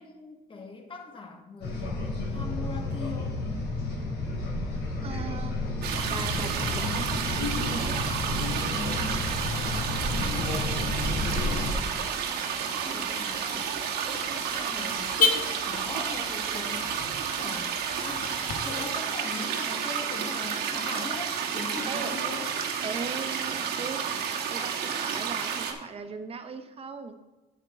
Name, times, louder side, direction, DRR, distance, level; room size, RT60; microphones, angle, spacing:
voice 1, 0.0-2.0 2.3-3.5 9.7-10.7 11.0-12.2 12.8-18.4 18.6-22.5, left 4 dB, 30° left, 3 dB, 1.7 m, -41 dB
sound 1, 1.6-11.7, left 2 dB, 85° left, 2.7 m, -31 dB
voice 2, 5.0-5.6 6.1-8.1 21.9-22.1 22.8-24.0 24.5-27.3, right 5 dB, 35° right, 8 dB, 1.0 m, -38 dB
sound 2, 5.8-25.7, right 7 dB, 75° right, 1.3 m, -31 dB
Car / Alarm, 9.4-18.6, left 4 dB, 50° left, 1.3 m, -35 dB
8.9 x 8.0 x 3.8 m, 1.1 s
cardioid pair, 110°, 17 cm